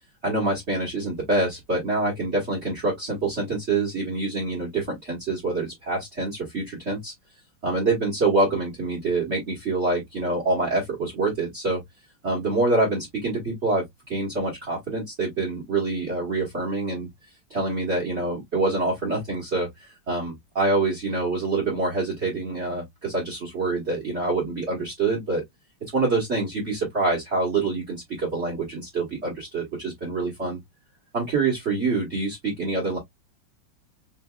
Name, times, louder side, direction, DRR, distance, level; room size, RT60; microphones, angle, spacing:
voice 1, 0.2-7.1 7.6-11.8 12.2-17.1 17.5-25.4 25.9-30.6 31.1-33.0, right 3 dB, 35° right, 1.4 m, -26 dB
4.5 x 2.7 x 2.2 m
omnidirectional pair, 2.3 m